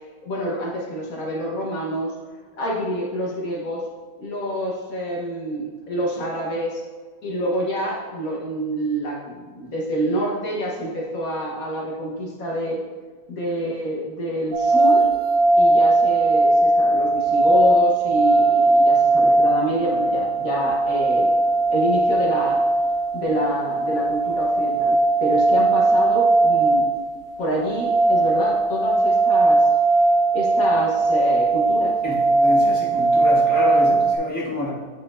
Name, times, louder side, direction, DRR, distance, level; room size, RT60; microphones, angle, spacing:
voice 1, 0.2-2.1 2.6-3.9 4.2-6.8 7.2-12.8 13.3-15.0 15.6-21.3 21.7-22.6 23.1-24.9 25.2-26.9 27.4-29.7 30.3-32.0, equal, 70° left, -4 dB, 1.6 m, -27 dB
sound 1, 14.5-34.2, right 2 dB, 90° right, 1.2 m, -19 dB
voice 2, 32.0-34.7, left 1 dB, 10° left, -8 dB, 1.6 m, -27 dB
9.3 x 4.1 x 2.5 m, 1.5 s
omnidirectional pair, 1.6 m